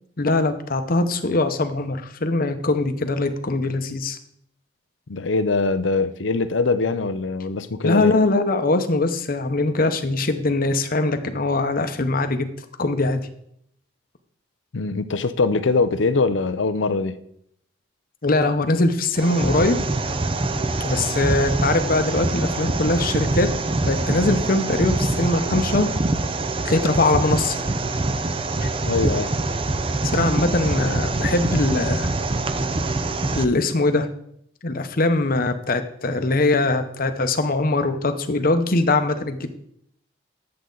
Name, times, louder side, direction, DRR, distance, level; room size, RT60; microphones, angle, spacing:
voice 1, 0.2-4.2 7.8-12.5 12.8-13.2 18.2-19.8 20.8-23.5 23.9-25.9 26.6-27.6 28.6-28.7 30.1-32.1 33.3-34.1 34.6-39.5, left 2 dB, 50° left, 9 dB, 0.9 m, -21 dB
voice 2, 5.1-8.2 14.7-17.2 28.9-29.3, left 3 dB, 85° left, 12 dB, 0.6 m, -22 dB
sound 1, 19.1-33.4, right 2 dB, 30° right, 0.6 m, -24 dB
10.5 x 7.8 x 3.9 m, 0.72 s
head